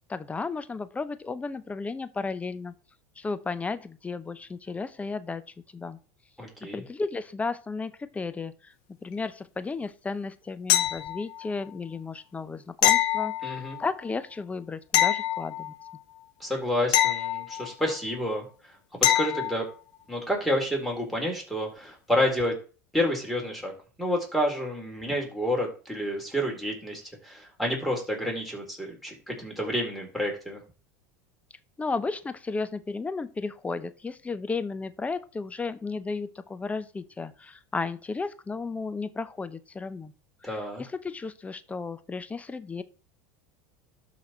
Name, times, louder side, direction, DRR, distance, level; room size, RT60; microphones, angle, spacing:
voice 1, 0.1-2.7 3.2-5.4 5.7-6.0 6.6-8.7 9.0-15.7 31.8-40.1 40.4-42.8, left 4 dB, 15° left, 13 dB, 0.8 m, -34 dB
voice 2, 6.4-6.8 13.4-13.8 16.4-18.4 19.0-19.7 20.1-22.5 22.9-23.7 24.0-30.6 40.4-40.8, equal, ahead, -1 dB, 3.9 m, -29 dB
sound 1, 10.7-11.5 12.8-13.9 14.9-16.0 16.9-18.0 19.0-19.6 22.4-22.5, left 13 dB, 60° left, 0.9 m, -25 dB
12.5 x 4.2 x 4.4 m, 0.37 s
hypercardioid pair, 95°, 9 cm